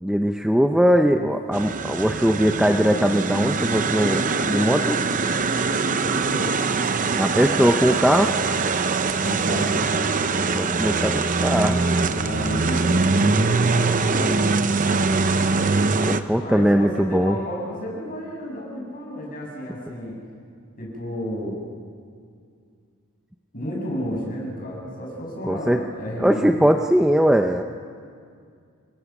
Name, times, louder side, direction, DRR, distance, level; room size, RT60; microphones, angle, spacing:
voice 1, 0.0-5.0 7.2-8.3 10.5-11.9 16.0-17.4 25.5-25.8 26.2-27.6, equal, 5° right, 5 dB, 0.6 m, -20 dB
sound 1, 1.5-16.2, right 4 dB, 35° right, 0.7 m, -23 dB
voice 2, 5.7-6.6 9.2-9.9 12.0-14.7 16.4-20.2 20.8-21.6 23.5-26.7, equal, 40° left, -2 dB, 7.4 m, -32 dB
29.5 x 20.0 x 6.0 m, 2.2 s
head